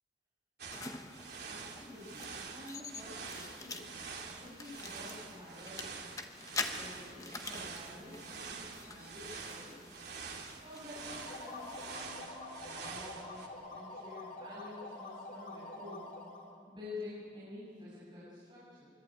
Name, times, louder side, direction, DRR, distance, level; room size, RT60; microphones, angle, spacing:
sound 1, 0.6-13.5, right 5 dB, 60° right, 2.9 m, -46 dB
sound 2, 0.7-12.0, left 3 dB, 20° left, 1.1 m, -46 dB
voice 1, 1.5-3.9 4.4-6.1 6.6-9.9 10.6-16.1 16.7-18.9, left 2 dB, 25° right, -10 dB, 8.0 m, -49 dB
sound 3, 10.9-16.6, left 2 dB, 45° left, 3.1 m, -47 dB
23.5 x 23.5 x 9.0 m, 2.4 s
head